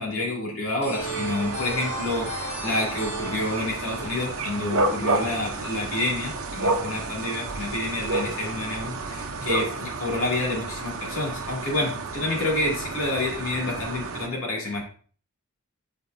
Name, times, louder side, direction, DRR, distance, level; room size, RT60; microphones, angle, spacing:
voice 1, 0.0-14.8, left 2 dB, 65° left, -3 dB, 2.5 m, -28 dB
sound 1, 0.8-5.4, right 1 dB, 30° left, 1.6 m, -36 dB
sound 2, 1.0-14.3, right 3 dB, 70° right, 0.8 m, -31 dB
7.5 x 5.1 x 2.7 m, 0.43 s
head